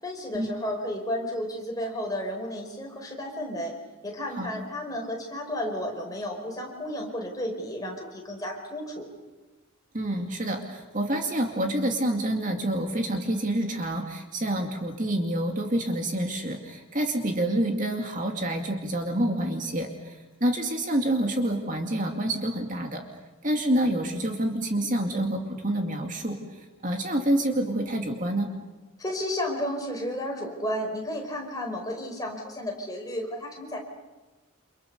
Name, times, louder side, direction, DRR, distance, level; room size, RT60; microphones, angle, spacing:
voice 1, 0.0-3.7 4.0-9.1 29.0-33.8, left 1 dB, 15° left, 1 dB, 4.9 m, -32 dB
voice 2, 9.9-23.0 23.4-26.4 26.8-28.5, right 1 dB, 35° right, 3 dB, 2.5 m, -27 dB
29.5 x 28.0 x 6.9 m, 1.2 s
head